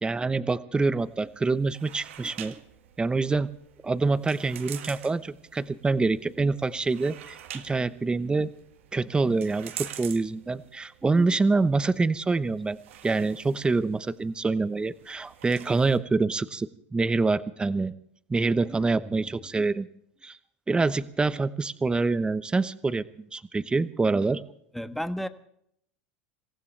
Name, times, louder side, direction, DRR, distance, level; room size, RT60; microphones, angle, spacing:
voice 1, 0.0-2.5 3.0-3.5 3.8-8.5 8.9-12.8 13.0-17.9 18.3-19.9 20.2-20.4 20.7-23.0 23.3-24.4, right 3 dB, 15° right, 13 dB, 1.0 m, -26 dB
sound 1, 1.0-16.0, right 11 dB, 85° right, 1.9 m, -46 dB
voice 2, 24.7-25.3, equal, ahead, 9 dB, 1.3 m, -32 dB
27.0 x 15.5 x 3.4 m, 0.71 s
supercardioid pair, 105°, 7 cm